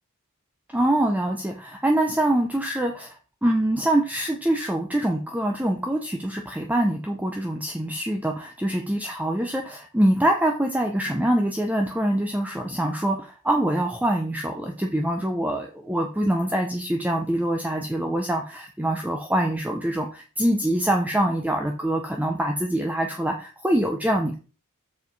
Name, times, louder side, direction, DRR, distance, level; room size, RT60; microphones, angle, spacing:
voice 1, 0.7-3.2 3.4-24.4, right 1 dB, 5° right, 2 dB, 0.7 m, -24 dB
7.3 x 4.7 x 4.6 m, 0.36 s
head